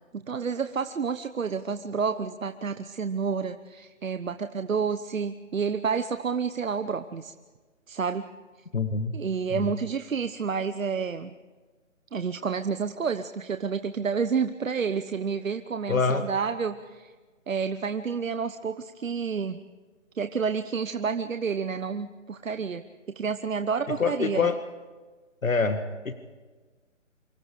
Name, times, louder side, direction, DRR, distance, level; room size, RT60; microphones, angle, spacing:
voice 1, 0.1-7.3 7.9-8.3 9.1-11.3 12.1-17.1 17.5-19.6 20.2-22.8 23.1-24.5, right 6 dB, 80° right, 9 dB, 1.1 m, -29 dB
voice 2, 8.7-9.2 9.5-9.6 15.9-16.3 24.0-24.6 25.4-26.1, left 4 dB, 90° left, 8 dB, 1.9 m, -25 dB
28.0 x 25.5 x 5.0 m, 1.4 s
hypercardioid pair, 170°, 39 cm